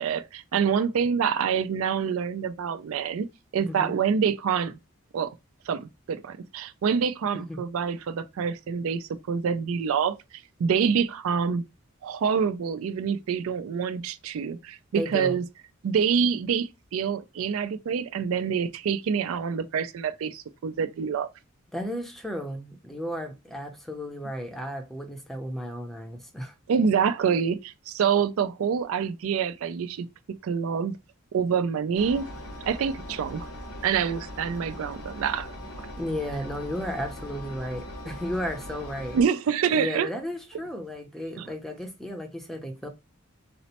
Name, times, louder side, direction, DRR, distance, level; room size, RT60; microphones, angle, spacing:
voice 1, 0.0-3.3 3.5-4.8 5.1-5.3 5.7-10.2 10.6-11.6 12.0-15.4 15.8-21.3 26.7-30.1 30.4-31.0 31.3-32.3 32.7-33.5 33.8-35.5 39.1-40.1 41.4-41.5, right 6 dB, 75° right, 0.3 m, -26 dB
voice 2, 14.9-15.4 21.7-26.5 36.0-39.2 39.7-42.9, equal, ahead, 0.5 m, -34 dB
Engine, 32.0-39.2, left 1 dB, 75° left, 0.9 m, -40 dB
4.1 x 2.0 x 2.8 m
head